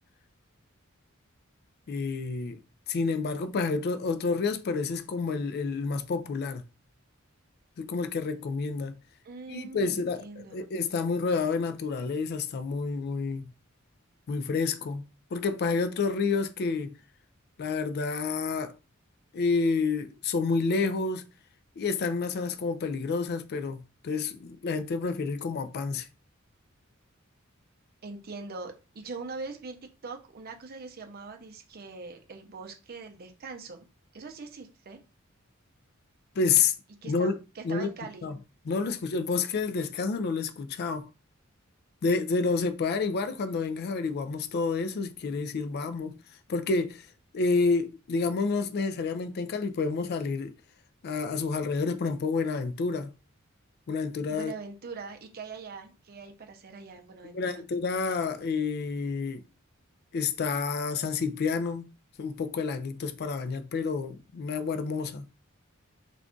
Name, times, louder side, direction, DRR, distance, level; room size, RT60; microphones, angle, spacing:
voice 1, 1.9-2.6 2.9-6.6 7.8-9.0 9.5-13.5 14.3-16.9 17.6-18.7 19.3-21.2 21.8-26.1 36.4-36.8 37.0-37.4 37.6-37.9 38.2-38.4 38.7-41.1 42.0-46.2 46.5-47.1 47.3-50.5 51.0-53.1 53.9-54.5 57.3-59.4 60.1-61.9 62.2-65.3, left 4 dB, 50° left, 0.3 m, -29 dB
voice 2, 9.2-10.6 28.0-29.8 30.0-33.9 34.1-35.0 37.0-38.3 54.3-57.6, right 4 dB, 45° right, 0.5 m, -42 dB
2.4 x 2.3 x 3.7 m
head